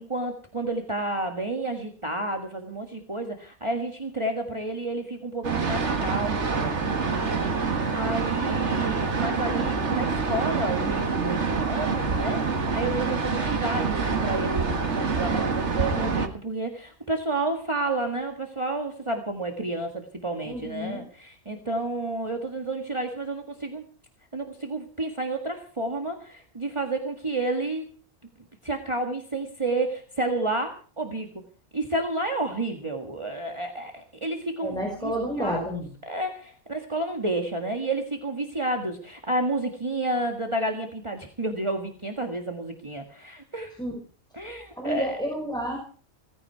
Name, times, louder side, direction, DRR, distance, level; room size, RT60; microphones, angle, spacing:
voice 1, 0.0-23.8 24.3-27.9 28.6-31.3 31.7-35.8 36.1-43.8 44.3-45.1, right 2 dB, 25° right, 3 dB, 1.8 m, -31 dB
sound 1, 5.4-16.3, right 4 dB, 65° right, 2.0 m, -26 dB
voice 2, 20.4-21.0 34.6-35.9 43.8-44.0 44.7-45.8, equal, 5° left, 0 dB, 4.9 m, -30 dB
17.5 x 15.5 x 4.6 m, 0.40 s
omnidirectional pair, 1.3 m